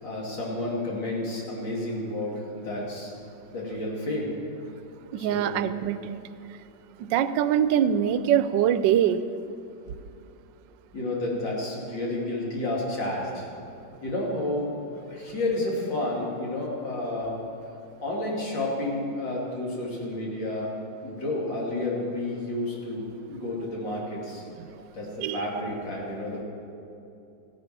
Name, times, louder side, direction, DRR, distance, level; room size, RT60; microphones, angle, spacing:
voice 1, 0.0-3.1 3.5-4.3 5.2-5.6 10.9-13.5 14.0-14.7 15.1-17.4 18.0-20.7 21.0-24.4 24.9-26.4, left 1 dB, 90° left, -4 dB, 3.3 m, -30 dB
voice 2, 5.1-6.2 7.0-9.2 24.6-24.7 25.2-25.5, right 9 dB, 85° right, 13 dB, 1.3 m, -23 dB
15.5 x 8.7 x 6.0 m, 2.7 s
omnidirectional pair, 1.9 m